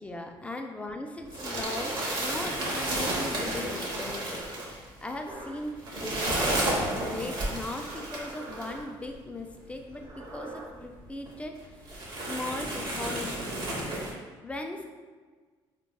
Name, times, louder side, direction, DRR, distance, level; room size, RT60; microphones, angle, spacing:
voice 1, 0.0-11.8 12.3-13.7 14.4-14.8, left 2 dB, 15° left, 4 dB, 0.3 m, -38 dB
sound 1, 1.2-8.7 9.6-9.7 10.0-10.1 10.8-10.9 11.3-11.4 11.8-14.1, right 1 dB, 50° right, 0.9 m, -32 dB
sound 2, 1.4-3.1 3.8-4.7 5.3-5.7 6.2-7.1 7.9-8.8 9.9-10.6, right 2 dB, 30° right, 0.6 m, -43 dB
4.0 x 2.2 x 2.2 m, 1.5 s
cardioid pair, 95°, 10 cm